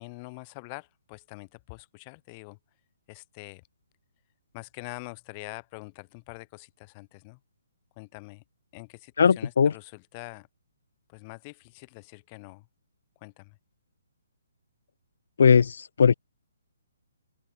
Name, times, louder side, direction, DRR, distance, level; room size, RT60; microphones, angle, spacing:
voice 1, 0.0-2.6 3.1-3.6 4.5-7.4 8.0-8.4 8.7-10.5 11.1-12.7 13.2-13.6, left 28 dB, 30° left, 0.9 m, -44 dB
voice 2, 9.2-9.7 15.4-16.1, left 6 dB, 65° left, 0.3 m, -19 dB
open air
hypercardioid pair, 145°, 0 cm